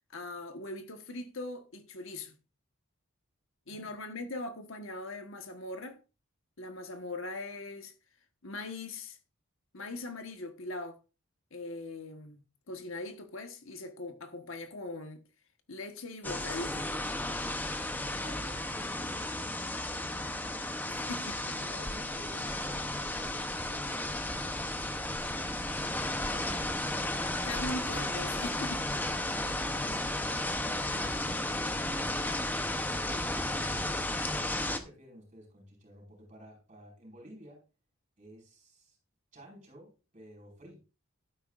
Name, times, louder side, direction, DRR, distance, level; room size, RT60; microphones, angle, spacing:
voice 1, 0.1-2.4 3.7-6.0 6.6-7.9 8.4-9.2 9.7-11.0 11.5-15.2 15.7-16.9 20.9-21.4 27.4-28.9, left 2 dB, 60° left, 1.3 m, -41 dB
sound 1, 16.2-34.8, left 1 dB, 10° left, 0.8 m, -34 dB
voice 2, 18.0-20.3 20.9-21.1 21.5-26.7 28.6-32.4 33.0-37.6 38.2-39.0 39.3-40.8, equal, 35° right, 5.4 m, -52 dB
12.0 x 10.0 x 2.5 m
head